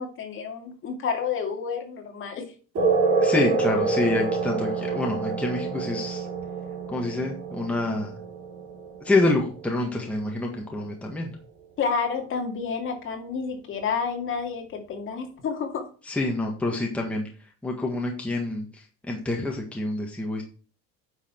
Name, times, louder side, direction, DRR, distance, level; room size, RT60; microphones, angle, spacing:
voice 1, 0.0-2.5 11.8-15.9, left 5 dB, 40° left, 3 dB, 2.2 m, -30 dB
sound 1, 2.8-9.8, right 4 dB, 40° right, 3.9 m, -27 dB
voice 2, 3.2-6.3 6.9-8.1 9.1-11.3 16.1-17.3 17.6-20.4, left 2 dB, 5° left, -1 dB, 1.6 m, -27 dB
9.7 x 5.9 x 4.5 m, 0.38 s
cardioid pair, 165°, 33 cm